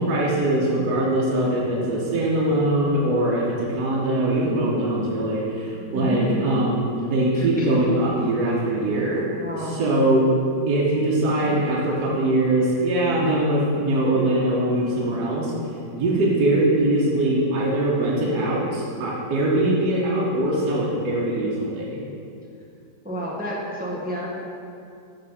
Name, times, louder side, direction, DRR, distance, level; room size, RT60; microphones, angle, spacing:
voice 1, 0.0-6.8 7.1-9.3 9.6-10.3 10.7-15.5 15.9-22.1, right 1 dB, 65° right, -5 dB, 1.4 m, -22 dB
voice 2, 5.9-6.4 7.4-7.9 9.4-9.8 23.0-24.3, equal, 15° right, -4 dB, 0.3 m, -30 dB
6.4 x 4.0 x 5.5 m, 2.5 s
omnidirectional pair, 1.8 m